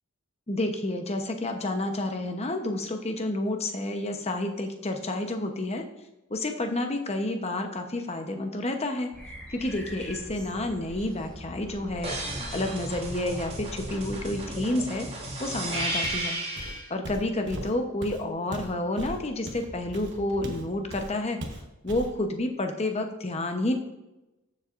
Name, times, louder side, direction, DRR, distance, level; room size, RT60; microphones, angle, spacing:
voice 1, 0.5-5.8 6.3-9.1 9.5-12.2 12.5-15.1 15.4-16.4 16.9-21.4 21.8-23.7, left 1 dB, 30° left, 5 dB, 0.9 m, -30 dB
sound 1, 9.1-14.6, equal, 5° left, 2.7 m, -43 dB
sound 2, 12.0-16.9 19.6-20.7, right 1 dB, 25° right, 2.1 m, -34 dB
Walk footsteps, 16.0-16.3 16.6-20.7 20.9-21.1 21.4-22.1, right 1 dB, 55° right, 1.1 m, -38 dB
14.0 x 7.4 x 2.5 m, 0.99 s
head